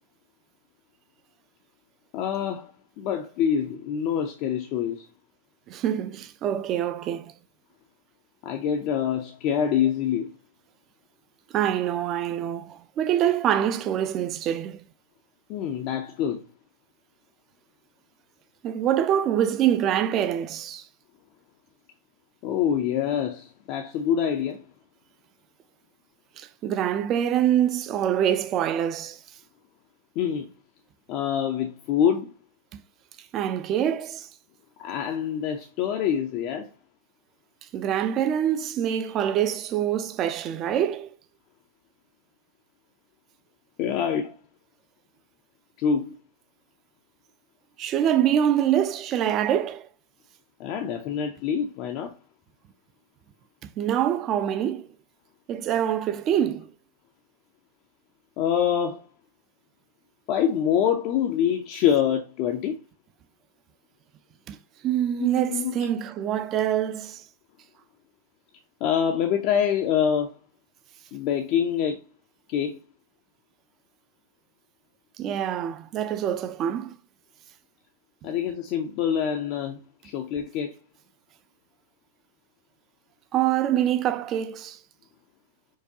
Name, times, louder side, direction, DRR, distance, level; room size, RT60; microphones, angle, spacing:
voice 1, 2.1-5.1 8.4-10.3 15.5-16.4 22.4-24.6 30.2-30.5 31.1-32.3 34.8-36.7 43.8-44.3 45.8-46.2 50.6-52.2 58.4-59.1 60.3-62.8 65.2-65.7 68.8-70.3 71.1-72.0 72.5-72.8 78.2-80.7, left 8 dB, 45° left, 0.5 m, -25 dB
voice 2, 5.7-7.3 11.5-14.8 18.6-20.9 26.4-29.2 32.7-32.8 33.3-34.3 37.7-41.1 47.8-49.9 53.6-54.9 55.5-56.7 64.5-64.6 64.8-67.2 75.2-77.0 83.3-84.8, right 10 dB, 35° right, 0.4 m, -25 dB
4.5 x 2.3 x 2.7 m
hypercardioid pair, 115°, 0 cm